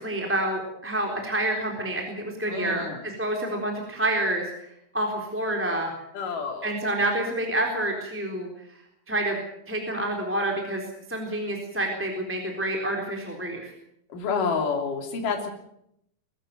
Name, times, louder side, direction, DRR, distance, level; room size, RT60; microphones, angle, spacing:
voice 1, 0.0-5.9 6.6-8.5 9.1-9.4 9.7-10.8 11.1-13.7, right 1 dB, 5° right, 1 dB, 3.0 m, -28 dB
voice 2, 2.5-3.0 6.1-6.7 14.1-15.5, left 5 dB, 50° left, 4 dB, 4.3 m, -28 dB
23.0 x 13.5 x 9.1 m, 0.77 s
omnidirectional pair, 5.3 m